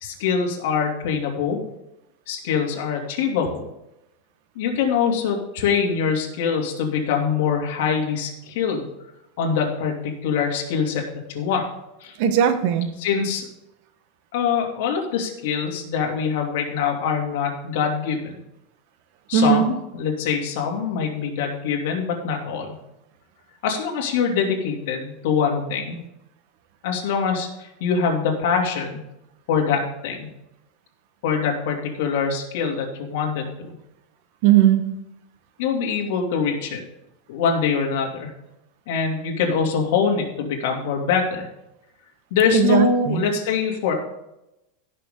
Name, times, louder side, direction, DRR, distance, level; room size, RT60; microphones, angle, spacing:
voice 1, 0.0-1.6 2.3-3.7 4.5-8.9 9.4-11.7 12.0-12.2 13.0-13.5 14.3-18.3 19.3-22.7 23.6-26.0 26.8-29.0 29.5-30.3 31.2-33.7 35.6-36.8 37.3-38.3 38.9-41.5 42.3-43.9, left 6 dB, 65° left, 1 dB, 2.6 m, -24 dB
voice 2, 12.2-12.9 19.3-19.7 34.4-34.9 42.5-43.3, right 9 dB, 55° right, 9 dB, 1.2 m, -18 dB
17.0 x 6.3 x 3.7 m, 0.89 s
supercardioid pair, 160°, 0 cm